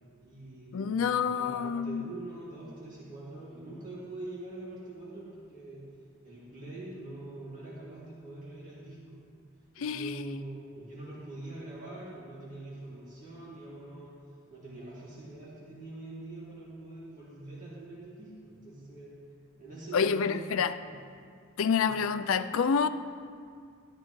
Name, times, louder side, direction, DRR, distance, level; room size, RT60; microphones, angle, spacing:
voice 1, 0.2-5.9 6.2-9.2 9.8-14.2 14.5-19.2 19.6-20.6 20.8-21.0 21.8-22.0, right 2 dB, 40° right, 2.2 m, -44 dB
voice 2, 0.7-2.0 9.8-10.4 19.9-20.7 21.6-22.9, left 6 dB, 70° left, 0.4 m, -28 dB
13.5 x 12.0 x 3.1 m
head